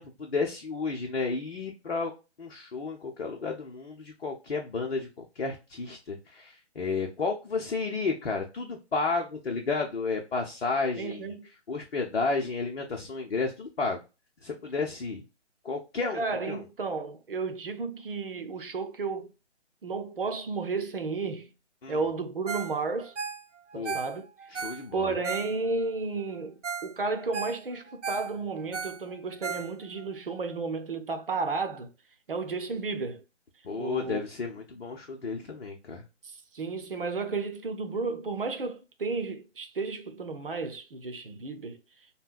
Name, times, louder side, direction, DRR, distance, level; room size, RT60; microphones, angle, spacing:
voice 1, 0.0-2.1 2.4-11.3 11.7-14.0 14.4-15.2 15.6-16.6 21.8-22.0 23.7-24.0 24.5-25.1 33.6-36.0, left 4 dB, 55° left, 0.8 m, -32 dB
voice 2, 11.0-11.5 16.1-19.3 19.8-21.5 21.9-23.1 23.7-24.3 24.9-31.9 32.3-33.2 33.8-34.2 36.2-41.8, right 4 dB, 50° right, 0.7 m, -33 dB
Ringtone, 22.5-22.8 23.0-25.9 26.3-26.4 26.6-26.9 27.2-30.1 30.5-30.6, right 5 dB, 85° right, 0.5 m, -36 dB
5.3 x 2.2 x 2.4 m
figure-of-eight pair, 145°, 35 cm